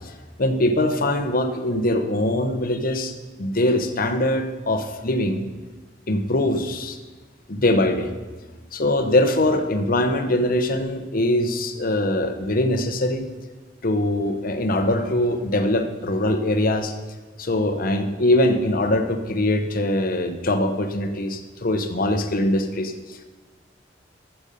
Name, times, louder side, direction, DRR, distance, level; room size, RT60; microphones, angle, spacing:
voice 1, 0.4-3.1 3.4-5.4 6.1-7.0 7.5-8.1 8.7-13.2 13.8-16.9 17.4-23.2, left 1 dB, 50° left, 7 dB, 0.9 m, -22 dB
13.5 x 7.1 x 5.4 m, 1.3 s
head